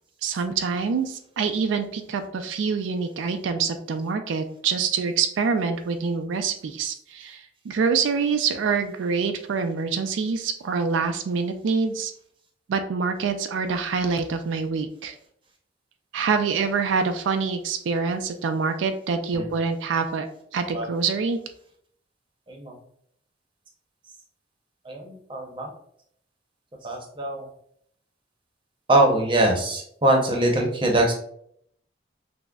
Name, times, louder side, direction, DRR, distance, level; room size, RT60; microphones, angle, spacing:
voice 1, 0.2-12.1 12.7-15.1 16.1-20.3 20.5-21.4, right 5 dB, 85° right, 7 dB, 0.3 m, -26 dB
voice 2, 24.9-25.7 26.8-27.5 28.9-31.1, right 1 dB, 25° right, 0 dB, 0.7 m, -22 dB
5.9 x 2.1 x 2.3 m, 0.68 s
head